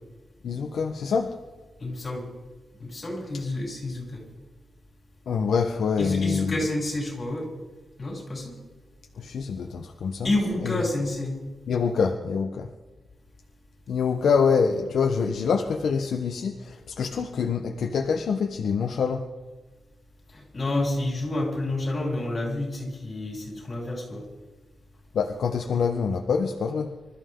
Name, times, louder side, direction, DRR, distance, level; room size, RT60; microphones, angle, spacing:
voice 1, 0.4-1.3 5.3-6.6 9.2-10.3 10.6-10.7 11.7-12.7 13.9-19.3 25.1-26.9, left 5 dB, 70° left, 3 dB, 1.2 m, -25 dB
voice 2, 1.8-2.3 2.8-4.2 6.0-7.5 8.0-8.6 10.2-11.4 20.3-24.2, left 2 dB, 30° left, -2 dB, 7.6 m, -29 dB
26.0 x 13.5 x 3.9 m, 1.2 s
wide cardioid pair, 155°, 0 cm